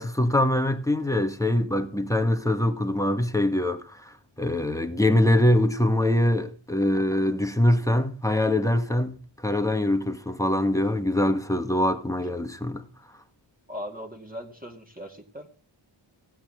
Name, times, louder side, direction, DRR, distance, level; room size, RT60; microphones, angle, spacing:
voice 1, 0.0-9.2 9.4-12.8, left 1 dB, 5° left, 1.6 m, -23 dB
voice 2, 13.7-15.6, equal, 15° right, 2.4 m, -39 dB
16.5 x 5.8 x 10.0 m
wide cardioid pair, 80°, 50 cm